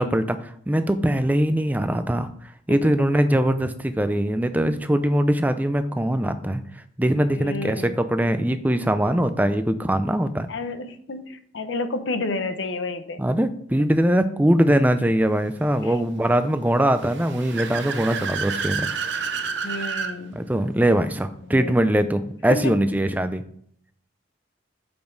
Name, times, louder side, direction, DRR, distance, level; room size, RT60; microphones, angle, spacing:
voice 1, 0.0-2.3 2.7-6.6 7.0-10.5 13.2-18.9 20.3-23.4, right 1 dB, 10° right, 10 dB, 0.4 m, -22 dB
voice 2, 2.7-3.1 4.1-4.3 7.3-8.0 10.5-13.3 15.8-16.0 19.6-20.5 21.4-21.7 22.5-22.8, left 3 dB, 75° left, 10 dB, 0.7 m, -31 dB
Car / Accelerating revving vroom, 16.9-20.1, right 5 dB, 65° right, 0.7 m, -29 dB
7.0 x 5.2 x 3.9 m, 0.62 s
head